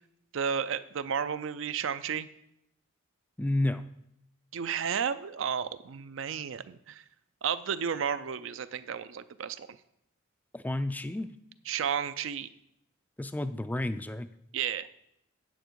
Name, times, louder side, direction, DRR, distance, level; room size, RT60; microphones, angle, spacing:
voice 1, 0.3-2.3 4.5-7.0 7.4-9.8 11.7-12.5 14.5-14.9, right 7 dB, 65° right, 14 dB, 0.4 m, -32 dB
voice 2, 3.4-3.8 10.5-11.3 13.2-14.3, left 1 dB, 10° left, 11 dB, 0.3 m, -31 dB
9.0 x 7.8 x 4.6 m, 0.80 s
head